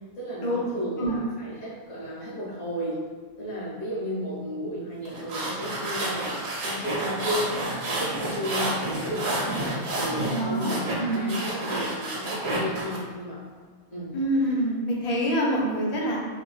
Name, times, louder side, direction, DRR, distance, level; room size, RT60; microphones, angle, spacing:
voice 1, 0.2-3.0 3.4-7.5 7.9-9.6 10.0-13.4 13.9-14.1, equal, 70° left, -10 dB, 1.8 m, -33 dB
sound 1, 5.1-13.0, right 1 dB, 80° right, 1.2 m, -30 dB
voice 2, 10.3-11.3 14.1-16.2, right 1 dB, 45° left, -4 dB, 0.5 m, -26 dB
3.7 x 2.4 x 2.4 m, 1.5 s
omnidirectional pair, 1.5 m